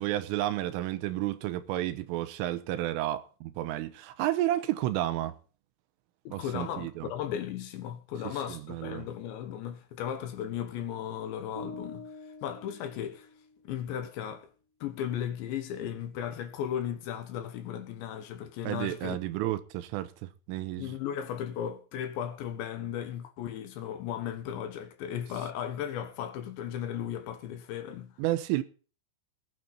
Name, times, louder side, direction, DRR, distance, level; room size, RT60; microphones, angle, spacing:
voice 1, 0.0-5.4 6.3-7.1 8.2-9.1 18.6-20.9 28.2-28.6, right 14 dB, 80° right, 3.4 m, -31 dB
voice 2, 6.2-12.1 12.4-13.3 13.6-14.5 14.8-19.2 20.8-28.2, left 9 dB, 70° left, 3.2 m, -36 dB
sound 1, 11.5-13.7, left 1 dB, 5° right, 4.2 m, -46 dB
19.0 x 9.3 x 4.2 m
omnidirectional pair, 5.9 m